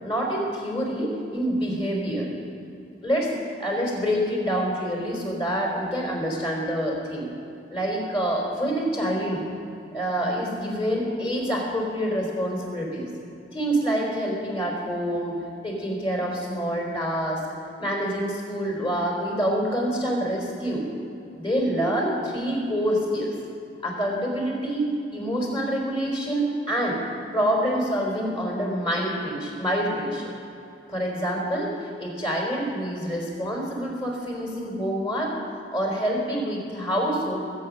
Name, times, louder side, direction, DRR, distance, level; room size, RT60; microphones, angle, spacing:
voice 1, 0.0-2.3 3.0-3.3 3.6-7.3 7.7-9.4 9.9-13.1 13.5-15.3 15.6-17.4 17.8-20.9 21.3-23.3 23.8-27.0 27.3-30.3 30.9-35.3 35.7-37.4, equal, 30° left, -2 dB, 4.0 m, -26 dB
20.5 x 8.6 x 6.4 m, 2.7 s
head